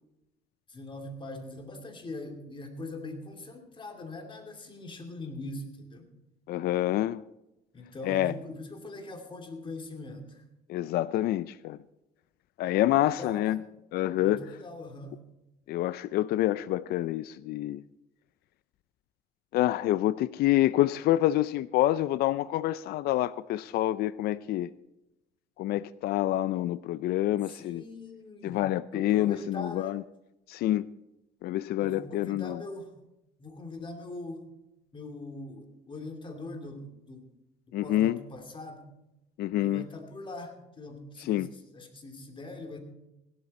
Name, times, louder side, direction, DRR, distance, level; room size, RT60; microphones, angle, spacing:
voice 1, 0.7-6.1 7.7-10.4 13.0-13.6 14.2-15.1 27.5-28.7 28.9-30.0 31.8-32.9 33.4-34.4 34.9-37.2 37.8-38.8 39.5-42.8, left 2 dB, 30° left, 2.7 m, -42 dB
voice 2, 6.5-7.2 8.1-8.3 10.7-11.8 12.6-13.6 13.9-14.4 15.7-17.8 19.5-24.7 25.6-27.8 28.4-30.0 30.5-30.8 31.4-32.6 37.7-38.2 39.4-39.8 41.2-41.5, left 14 dB, 65° left, 0.4 m, -27 dB
16.5 x 12.0 x 4.3 m
cardioid pair, 110°, 17 cm